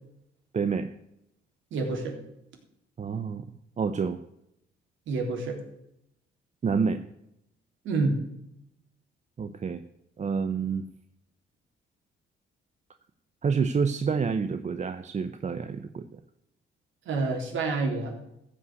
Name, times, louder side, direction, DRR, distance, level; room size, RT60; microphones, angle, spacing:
voice 1, 0.5-0.9 3.0-3.4 3.8-4.2 6.6-7.0 9.4-9.8 10.2-10.8 13.4-16.1, right 5 dB, 35° right, 9 dB, 0.8 m, -28 dB
voice 2, 1.7-2.2 5.1-5.6 7.8-8.2 17.1-18.2, right 3 dB, 75° right, 1 dB, 3.6 m, -28 dB
14.5 x 5.8 x 8.2 m, 0.82 s
cardioid pair, 90°, 20 cm